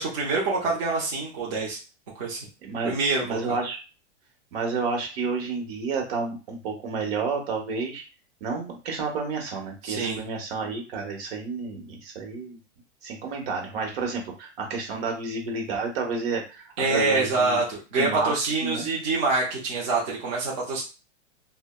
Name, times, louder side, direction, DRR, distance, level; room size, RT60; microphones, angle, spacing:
voice 1, 0.0-1.8 2.2-2.5 2.8-3.6 9.8-10.2 16.8-20.8, right 3 dB, 25° right, -4 dB, 0.5 m, -26 dB
voice 2, 2.6-3.8 4.5-8.0 8.4-12.6 13.0-17.6 18.0-18.9, right 4 dB, 55° right, 2 dB, 1.0 m, -30 dB
3.3 x 2.0 x 2.2 m, 0.32 s
supercardioid pair, 160°, 36 cm